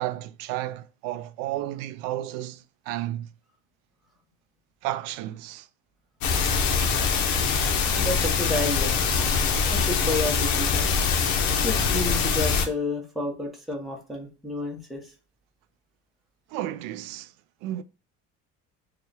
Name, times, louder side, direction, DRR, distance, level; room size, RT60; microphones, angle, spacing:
voice 1, 0.0-3.3 4.8-5.7 16.5-17.3 17.6-17.8, right 14 dB, 85° right, 0.5 m, -32 dB
sound 1, 6.2-12.7, left 5 dB, 65° left, 1.0 m, -23 dB
voice 2, 8.0-8.9 9.7-10.9 11.6-15.1, left 2 dB, ahead, 0.9 m, -30 dB
4.5 x 2.3 x 3.3 m
cardioid pair, 135°, 32 cm